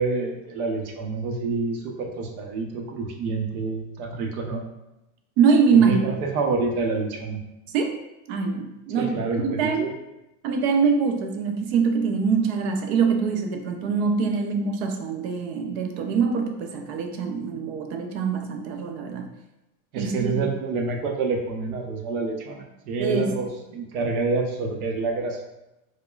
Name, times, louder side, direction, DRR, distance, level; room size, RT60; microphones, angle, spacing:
voice 1, 0.0-4.6 5.7-7.4 9.0-9.9 19.9-25.4, right 4 dB, 90° right, 2 dB, 0.8 m, -27 dB
voice 2, 5.4-6.0 7.7-8.0 8.3-9.9 10.4-19.3 20.0-20.4 23.0-23.3, right 5 dB, 50° right, 4 dB, 0.5 m, -23 dB
4.8 x 2.1 x 2.3 m, 0.92 s
supercardioid pair, 180°, 42 cm